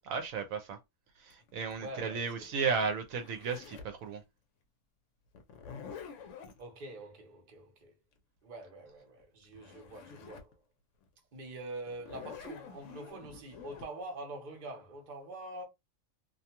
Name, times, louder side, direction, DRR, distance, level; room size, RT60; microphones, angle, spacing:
voice 1, 0.0-0.8 1.2-4.2, right 5 dB, 75° right, 1.0 m, -34 dB
Zipper (clothing), 1.3-4.0 5.3-6.6 9.2-9.3 9.5-10.5 11.0-11.1 11.9-13.9, left 6 dB, 70° left, 0.9 m, -48 dB
voice 2, 1.8-2.2 6.6-7.9 8.4-10.5 11.3-15.6, right 2 dB, 40° right, 0.8 m, -45 dB
2.5 x 2.3 x 2.8 m
omnidirectional pair, 1.5 m